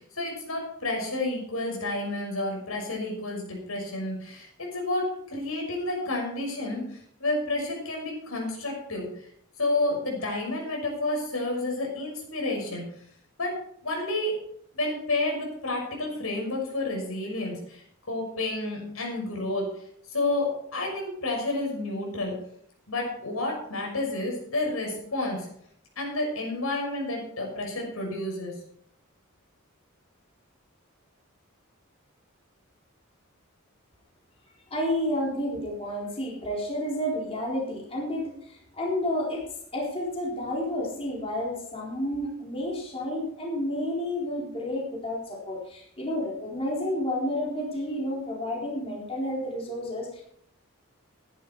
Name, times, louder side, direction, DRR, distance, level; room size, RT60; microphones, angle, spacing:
voice 1, 0.0-9.3 9.6-12.8 13.4-13.6 13.8-14.4 14.7-19.7 20.1-22.3 22.9-25.5 26.0-28.5, left 2 dB, 85° left, 0 dB, 6.3 m, -30 dB
voice 2, 34.7-39.4 39.7-50.2, left 1 dB, 25° left, -4 dB, 4.1 m, -30 dB
15.0 x 10.5 x 4.7 m, 0.67 s
head